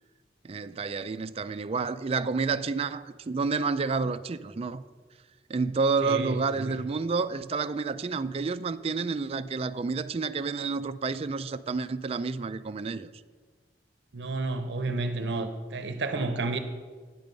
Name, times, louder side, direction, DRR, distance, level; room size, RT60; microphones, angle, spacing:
voice 1, 0.4-4.8 5.5-13.1, right 4 dB, 35° right, 0.4 m, -29 dB
voice 2, 6.0-6.7 14.1-16.6, right 3 dB, 75° right, 0.7 m, -31 dB
9.7 x 7.6 x 5.3 m
head